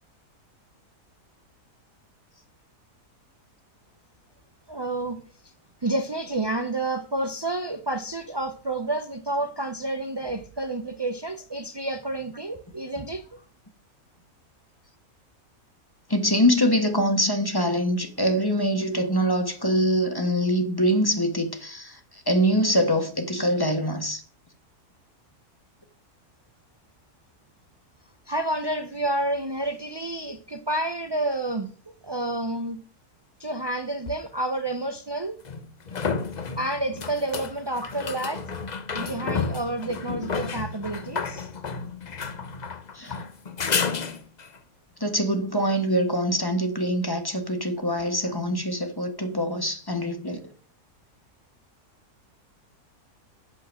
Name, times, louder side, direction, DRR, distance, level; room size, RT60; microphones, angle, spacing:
voice 1, 4.7-5.2 5.8-13.4 28.3-32.8 33.4-35.4 36.6-38.4 38.9-41.5, right 2 dB, 40° right, 0.3 m, -29 dB
voice 2, 16.1-24.2 37.8-37.9 42.9-43.2 45.0-50.4, equal, 15° left, 1.3 m, -24 dB
sound 1, 34.1-34.2 35.4-44.6 48.0-48.1, left 5 dB, 40° left, 0.6 m, -31 dB
8.4 x 7.0 x 6.2 m
omnidirectional pair, 1.6 m